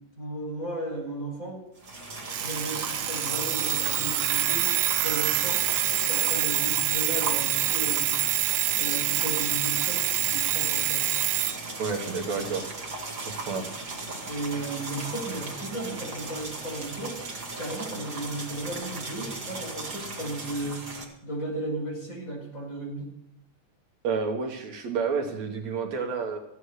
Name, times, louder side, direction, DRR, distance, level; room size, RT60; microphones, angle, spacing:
voice 1, 0.2-1.6 2.4-4.7 5.0-8.1 8.8-11.1 14.2-17.2 17.6-20.8 21.2-23.1, right 1 dB, 25° left, -2 dB, 5.4 m, -35 dB
sound 1, 1.8-21.0, right 3 dB, 35° right, 2.1 m, -37 dB
Alarm, 2.3-11.6, right 14 dB, 90° right, 2.1 m, -26 dB
voice 2, 11.8-12.6 13.2-13.7 24.0-26.4, right 5 dB, 70° right, 3 dB, 2.3 m, -30 dB
14.5 x 8.3 x 6.5 m, 0.80 s
omnidirectional pair, 3.3 m